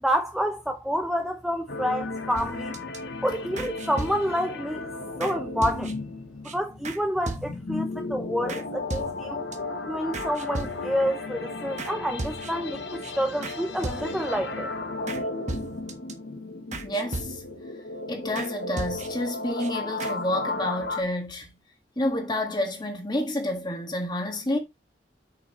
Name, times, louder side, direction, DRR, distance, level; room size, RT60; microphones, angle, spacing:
voice 1, 0.0-2.8 3.2-4.8 5.2-5.9 6.4-9.5 9.9-12.8 13.2-14.7, equal, ahead, 0.6 m, -28 dB
sound 1, 1.7-21.0, left 2 dB, 70° left, 1.0 m, -34 dB
sound 2, 2.3-3.0 3.6-4.5 5.2-5.3 5.6-6.1 6.4-6.5 6.8-7.0 7.3-7.8 8.5-8.6 8.9-9.6 10.1-11.1 11.8-11.9 12.2-12.7 13.0-13.1 13.4-13.6 13.8-14.4 15.1-15.2 15.5-16.1 16.7-17.7 18.4-18.5 18.8-19.3 19.6-19.7 20.0-20.1, right 2 dB, 40° right, 1.1 m, -36 dB
voice 2, 16.8-17.4 18.1-21.5 22.0-24.6, left 1 dB, 25° left, 1.7 m, -29 dB
7.0 x 5.6 x 3.0 m
head